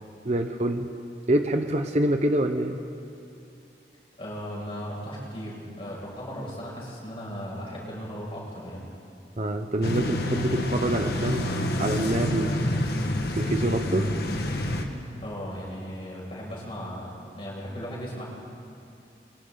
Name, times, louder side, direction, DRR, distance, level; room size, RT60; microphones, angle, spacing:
voice 1, 0.2-0.9 1.3-2.8 9.4-11.5 11.8-12.6 13.4-14.1, right 1 dB, 40° right, 6 dB, 0.9 m, -26 dB
voice 2, 4.2-8.8 15.2-18.3, equal, 30° left, -5 dB, 6.8 m, -37 dB
sound 1, 9.8-14.8, left 1 dB, 60° left, 1.8 m, -28 dB
29.0 x 24.0 x 4.1 m, 2.6 s
head